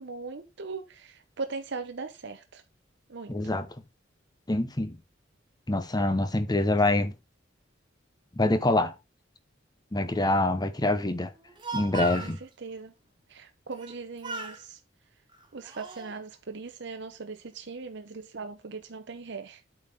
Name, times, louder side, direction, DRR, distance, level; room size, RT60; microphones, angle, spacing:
voice 1, 0.0-2.6 3.1-3.5 12.1-12.9 13.3-14.8 15.5-19.6, right 4 dB, 65° right, 0.8 m, -39 dB
voice 2, 3.3-3.7 4.5-5.0 5.7-7.1 8.4-8.9 9.9-11.3 11.7-12.4, left 2 dB, 20° left, 0.9 m, -25 dB
Speech, 11.3-12.4 13.7-14.0 14.2-14.6 15.3-16.1, right 3 dB, 25° right, 1.5 m, -37 dB
8.4 x 5.5 x 3.5 m
head